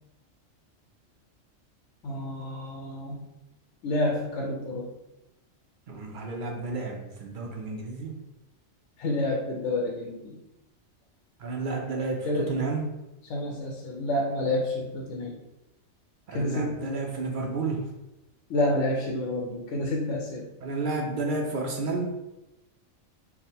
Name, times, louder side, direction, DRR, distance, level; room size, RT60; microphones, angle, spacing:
voice 1, 2.0-3.3 3.8-4.9 9.0-10.4 12.2-12.5 13.3-15.3 16.3-16.8 18.5-20.5, left 1 dB, 70° left, -1 dB, 0.9 m, -29 dB
voice 2, 5.9-8.1 11.4-12.9 16.3-17.8 20.6-22.1, right 3 dB, 60° right, 1 dB, 0.5 m, -31 dB
3.3 x 2.1 x 4.2 m, 0.98 s
omnidirectional pair, 1.4 m